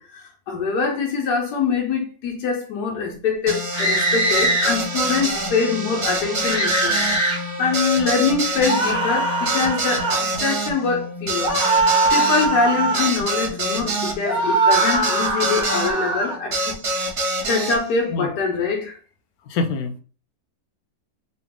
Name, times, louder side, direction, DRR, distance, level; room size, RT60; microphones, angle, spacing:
voice 1, 0.0-11.5 12.1-16.8 17.1-19.0, left 5 dB, 90° left, 1.4 m, -24 dB
sound 1, 3.5-15.9 16.5-17.8, right 2 dB, 45° right, 1.1 m, -26 dB
sound 2, 3.7-4.7 6.4-7.4 8.6-10.2 11.4-13.1 14.2-16.4, right 2 dB, 5° right, 0.9 m, -21 dB
voice 2, 19.5-20.0, left 3 dB, 75° left, 1.0 m, -25 dB
4.0 x 2.3 x 3.5 m
omnidirectional pair, 1.7 m